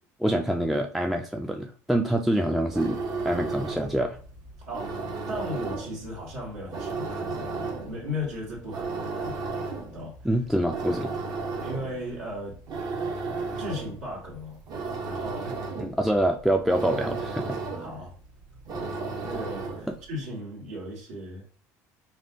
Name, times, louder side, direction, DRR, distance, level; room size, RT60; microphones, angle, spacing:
voice 1, 0.2-4.2 10.2-11.2 15.8-17.6 19.9-20.0, right 1 dB, ahead, 4 dB, 0.3 m, -26 dB
sound 1, 2.6-20.1, right 4 dB, 55° right, 0.9 m, -34 dB
voice 2, 4.6-9.5 9.9-10.1 11.6-12.6 13.6-14.6 15.0-15.6 17.4-18.1 18.7-18.9 19.2-21.4, left 1 dB, 80° right, -5 dB, 1.6 m, -36 dB
4.0 x 2.4 x 2.7 m, 0.41 s
hypercardioid pair, 70°, 9 cm